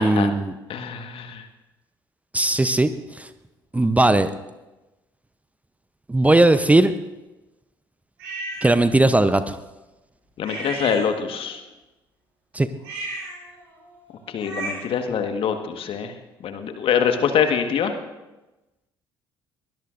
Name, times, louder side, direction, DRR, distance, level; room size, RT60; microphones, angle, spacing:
voice 1, 0.0-0.5 2.3-3.3 3.7-4.3 6.1-6.9 8.6-9.6 12.5-12.7, right 2 dB, 10° right, 12 dB, 0.8 m, -18 dB
voice 2, 0.7-1.4 10.4-11.6 14.3-16.1 16.4-17.9, left 7 dB, 50° left, 7 dB, 1.6 m, -24 dB
sound 1, 8.2-8.7 10.4-11.5 12.8-15.0, right 2 dB, 75° right, 7.1 m, -34 dB
22.0 x 19.5 x 2.6 m, 1.0 s
figure-of-eight pair, 50°, 12 cm